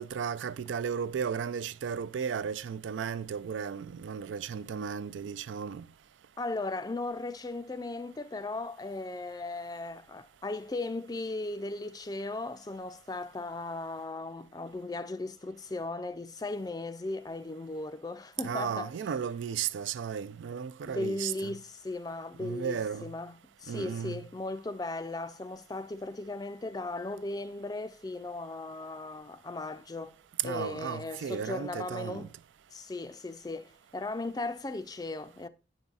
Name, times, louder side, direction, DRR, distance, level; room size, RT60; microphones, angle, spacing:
voice 1, 0.0-5.9 18.4-21.5 22.4-23.1 23.7-24.2 30.4-32.3, right 7 dB, 85° right, 0.3 m, -35 dB
voice 2, 6.4-18.9 20.9-30.2 30.4-32.3 32.7-35.5, left 2 dB, 20° left, 0.4 m, -37 dB
9.6 x 5.4 x 2.3 m
head